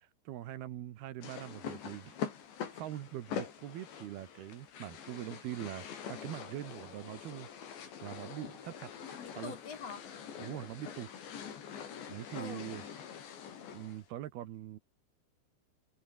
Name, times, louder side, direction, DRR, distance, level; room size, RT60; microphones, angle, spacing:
voice 1, 0.0-2.2 2.7-7.5 8.0-8.9 9.3-9.5 10.4-11.1 12.1-12.9 13.7-14.8, right 13 dB, 65° right, 3.0 m, -43 dB
sound 1, 1.2-14.0, left 8 dB, 70° left, 5.9 m, -44 dB
voice 2, 9.0-10.1 12.3-12.7, left 6 dB, 50° left, 2.2 m, -44 dB
omnidirectional pair, 5.3 m